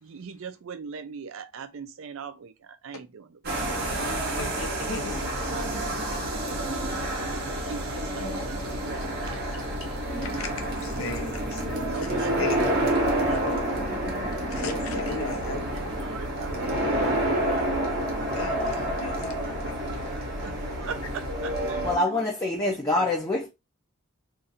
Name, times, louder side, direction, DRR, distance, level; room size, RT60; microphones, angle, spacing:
voice 1, 0.0-3.6 3.9-4.4 4.8-6.7 7.5-9.7 11.7-12.3 12.8-14.0 15.3-17.8 19.0-19.1 19.3-19.9 20.4-20.5 20.8-22.7 22.9-23.1, right 6 dB, 60° right, 0.4 m, -41 dB
sound 1, 3.4-22.0, right 1 dB, 45° right, 0.9 m, -29 dB
voice 2, 4.4-5.2 10.2-12.6 14.5-15.6 18.3-19.8 21.0-21.1, left 4 dB, 65° left, 0.7 m, -36 dB
voice 3, 21.8-23.5, left 2 dB, 15° left, 0.6 m, -25 dB
2.6 x 2.4 x 4.0 m
head